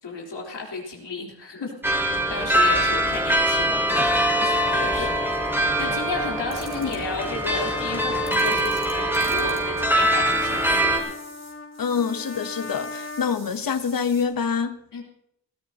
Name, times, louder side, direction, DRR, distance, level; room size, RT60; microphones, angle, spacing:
voice 1, 0.0-11.2 14.9-15.0, left 3 dB, 90° left, 3.6 m, -34 dB
sound 1, 1.8-11.0, right 1 dB, 5° right, 2.0 m, -23 dB
voice 2, 4.7-5.3 5.9-6.0 6.8-7.0 11.8-14.8, left 6 dB, 55° left, 1.0 m, -27 dB
Trumpet, 5.4-13.4, left 3 dB, 35° left, 1.3 m, -37 dB
sound 2, 6.5-7.2 8.3-14.3, right 3 dB, 65° right, 4.0 m, -47 dB
20.0 x 14.0 x 2.9 m
wide cardioid pair, 90°, 40 cm